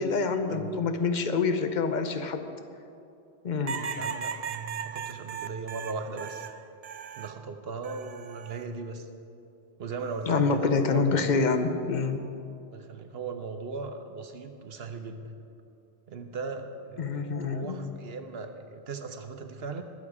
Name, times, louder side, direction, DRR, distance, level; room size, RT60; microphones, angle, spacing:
voice 1, 0.0-2.5 3.4-3.9 10.3-12.3 17.0-17.8, left 4 dB, 45° left, 8 dB, 0.9 m, -26 dB
sound 1, 3.7-7.4 7.8-8.6 10.0-10.4, right 6 dB, 50° right, 0.5 m, -37 dB
voice 2, 4.0-6.5 7.2-9.1 9.8-11.4 12.7-15.4 16.1-19.8, right 4 dB, 65° right, 7 dB, 1.0 m, -38 dB
21.0 x 7.2 x 4.8 m, 2.7 s
omnidirectional pair, 1.1 m